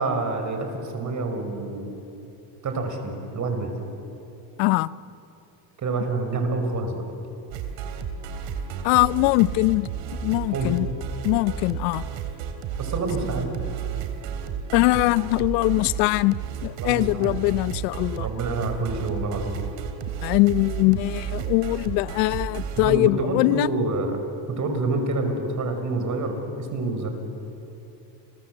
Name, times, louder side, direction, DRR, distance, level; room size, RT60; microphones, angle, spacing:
voice 1, 0.0-1.9 2.6-3.7 5.8-7.0 10.5-10.7 12.8-13.5 16.8-17.3 18.2-19.6 22.8-24.2 24.5-27.1, right 3 dB, 40° right, 5 dB, 5.9 m, -27 dB
voice 2, 4.6-4.9 8.8-9.9 10.2-10.9 11.2-12.0 14.7-18.3 20.2-23.7, left 21 dB, 85° left, 18 dB, 0.8 m, -22 dB
sound 1, 7.5-22.9, right 7 dB, 65° right, 3.4 m, -32 dB
30.0 x 24.0 x 8.0 m, 2.9 s
supercardioid pair, 115°, 47 cm